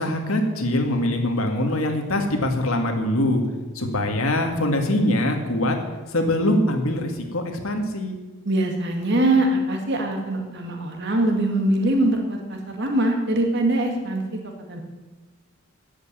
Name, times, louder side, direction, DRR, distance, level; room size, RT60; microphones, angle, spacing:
voice 1, 0.0-3.4 3.8-5.8 6.1-8.2, left 1 dB, 75° left, 3 dB, 2.1 m, -23 dB
voice 2, 8.4-14.2 14.7-14.8, right 1 dB, 55° right, 2 dB, 2.3 m, -22 dB
10.5 x 8.4 x 8.9 m, 1.2 s
head